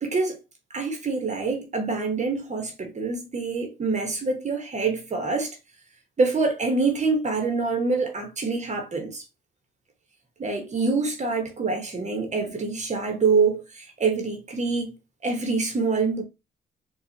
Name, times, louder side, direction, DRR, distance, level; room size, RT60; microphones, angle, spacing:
voice 1, 0.0-0.4 0.7-5.5 6.2-9.2 10.4-14.9 15.2-16.2, right 4 dB, 35° right, 1.0 m, -25 dB
4.2 x 2.4 x 2.8 m
cardioid pair, 90°, 20 cm